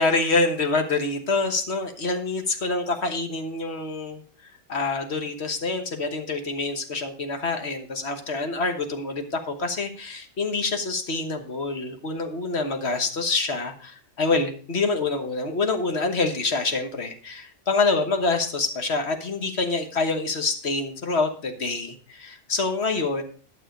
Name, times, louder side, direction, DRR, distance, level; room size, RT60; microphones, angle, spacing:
voice 1, 0.0-4.2 4.7-23.2, left 3 dB, 55° left, 6 dB, 1.5 m, -26 dB
12.0 x 6.8 x 5.0 m, 0.41 s
omnidirectional pair, 1.3 m